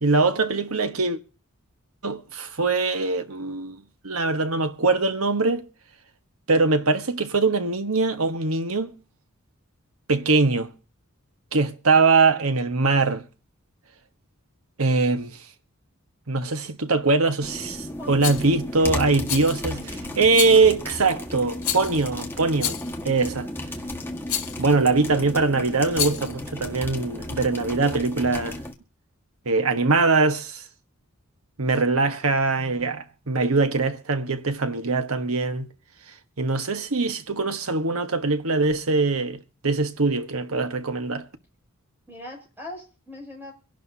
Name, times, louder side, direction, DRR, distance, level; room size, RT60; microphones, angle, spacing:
voice 1, 0.0-1.2 2.0-5.6 6.5-9.0 10.1-10.7 11.5-13.2 14.8-15.4 16.3-19.8 20.1-22.8 23.0-23.5 24.6-28.6 29.4-30.6 31.6-35.7 36.4-41.3, right 3 dB, 80° right, 1.4 m, -22 dB
sound 1, 17.4-28.7, left 1 dB, 10° left, 1.6 m, -34 dB
voice 2, 18.0-18.4 19.7-20.2 42.1-43.5, left 1 dB, 10° right, 7.2 m, -41 dB
Rattle, 18.2-18.5 19.3-19.7 20.3-20.7 21.6-22.1 22.6-23.0 24.3-24.6 25.9-26.3, left 11 dB, 75° left, 1.7 m, -29 dB
25.0 x 11.5 x 2.8 m
head